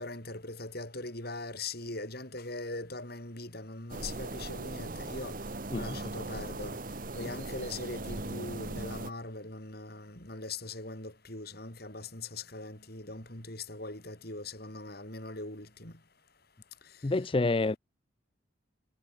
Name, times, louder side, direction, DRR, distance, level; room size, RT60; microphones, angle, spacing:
voice 1, 0.0-5.4 5.7-6.8 7.1-15.9, left 2 dB, 50° left, 6.3 m, -41 dB
sound 1, 3.9-9.1, right 2 dB, 45° right, 1.3 m, -39 dB
voice 2, 17.0-17.8, left 2 dB, 25° left, 0.4 m, -28 dB
head